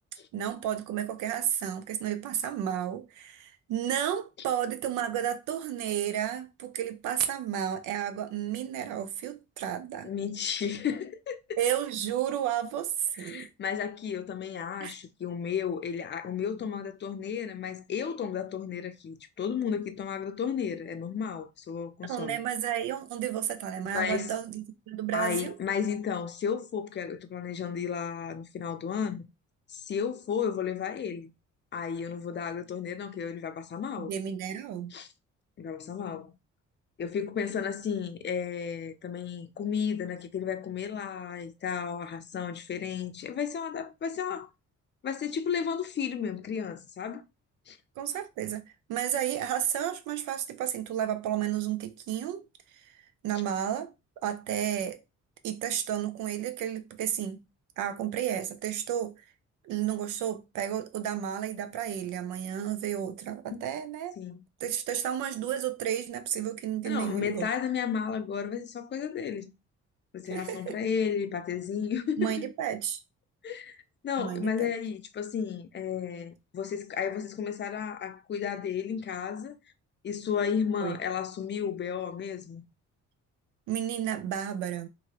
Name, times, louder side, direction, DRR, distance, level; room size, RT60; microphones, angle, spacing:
voice 1, 0.3-10.1 11.6-13.5 14.8-14.9 22.1-25.5 34.0-34.9 48.0-48.6 48.9-52.4 52.8-53.9 54.2-55.0 55.4-57.4 57.8-59.1 59.6-64.1 64.6-67.5 70.3-70.8 72.2-73.0 74.2-74.7 80.8-81.0 83.7-84.9, right 10 dB, 85° right, 0.5 m, -32 dB
voice 2, 10.0-11.6 13.1-22.4 23.9-24.3 25.1-29.3 29.7-31.3 31.7-34.1 34.9-35.1 35.6-36.4 37.0-44.5 45.0-47.2 47.7-47.8 63.5-63.6 64.2-64.4 66.8-69.5 70.1-72.5 73.4-73.8 74.0-79.6 80.0-82.6, left 7 dB, 35° left, 0.5 m, -33 dB
2.8 x 2.6 x 2.8 m
cardioid pair, 90°, 30 cm